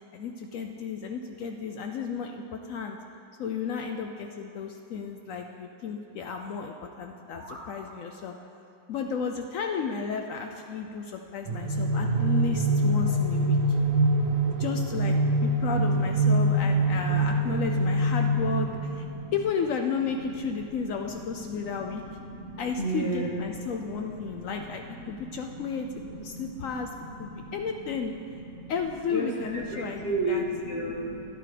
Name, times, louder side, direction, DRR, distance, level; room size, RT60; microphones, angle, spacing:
voice 1, 0.0-3.0 3.4-8.3 8.9-13.6 14.6-19.1 19.3-22.0 22.6-26.9 27.2-28.1 28.7-30.4, left 5 dB, 85° left, 4 dB, 0.7 m, -33 dB
sound 1, 7.0-7.7, right 1 dB, 15° right, 1.6 m, -46 dB
sound 2, 11.5-19.4, right 1 dB, 80° right, 1.6 m, -25 dB
voice 2, 16.3-17.3 18.8-19.3 21.4-21.5 21.8-22.0 22.3-23.3 23.6-24.5 24.9-25.6 26.1-26.5 27.3-27.5 28.3-28.7 29.1-31.3, right 2 dB, 35° left, -4 dB, 1.6 m, -34 dB
13.0 x 9.8 x 3.3 m, 2.7 s
omnidirectional pair, 2.0 m